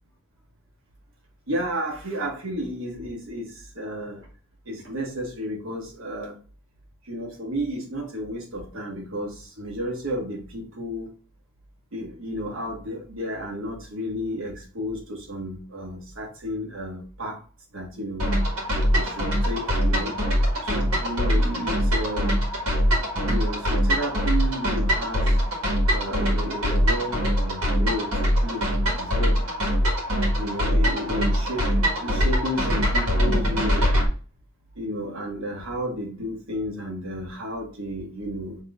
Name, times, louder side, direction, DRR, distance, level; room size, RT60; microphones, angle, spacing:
voice 1, 1.5-4.3 4.6-6.4 7.0-11.1 11.9-17.4 17.7-18.3 18.9-20.2 20.6-22.4 23.3-25.3 25.9-28.7 28.9-29.4 30.4-33.9 34.7-38.6, equal, 65° right, 1.4 m, -32 dB
sound 1, 18.2-34.1, equal, 80° right, 1.6 m, -23 dB
6.0 x 3.2 x 2.4 m
head